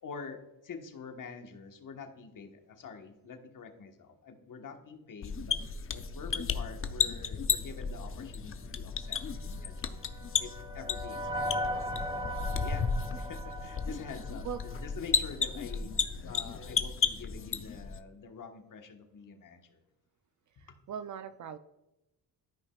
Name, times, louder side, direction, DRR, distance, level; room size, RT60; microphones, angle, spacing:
voice 1, 0.0-5.6 5.9-10.0 10.4-12.1 12.5-12.8 13.1-19.8, left 5 dB, 50° left, 5 dB, 1.3 m, -46 dB
sound 1, 5.2-18.0, left 5 dB, 35° left, 0.6 m, -34 dB
sound 2, 9.6-15.0, equal, 10° right, 0.7 m, -38 dB
voice 2, 20.6-21.6, right 8 dB, 50° right, 11 dB, 0.5 m, -40 dB
13.0 x 5.3 x 2.3 m, 0.96 s
cardioid pair, 90°, 40 cm